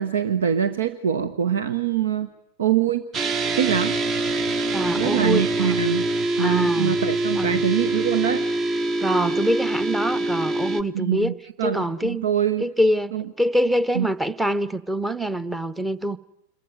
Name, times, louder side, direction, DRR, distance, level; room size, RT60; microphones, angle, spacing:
voice 1, 0.0-2.3 2.6-3.0 3.5-4.0 5.0-6.0 6.4-8.4 10.9-11.3 11.6-12.6 13.1-13.2 13.9-14.1, right 9 dB, 65° right, 1.0 m, -24 dB
sound 1, 3.1-10.8, right 2 dB, 30° right, 1.2 m, -24 dB
voice 2, 4.7-5.7 6.4-7.0 7.3-7.6 9.0-12.3 12.6-16.2, equal, 5° right, 1.0 m, -25 dB
27.0 x 22.5 x 9.4 m
figure-of-eight pair, 90°, 0 cm